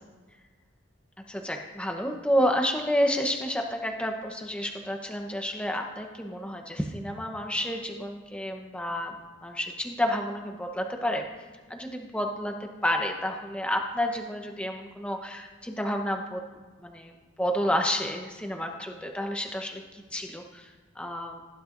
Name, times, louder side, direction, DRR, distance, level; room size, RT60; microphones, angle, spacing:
voice 1, 1.3-9.2 9.4-11.2 11.7-16.4 16.8-17.1 17.4-20.7 21.0-21.4, equal, 5° left, 3 dB, 0.9 m, -30 dB
17.5 x 11.0 x 2.6 m, 1.4 s
head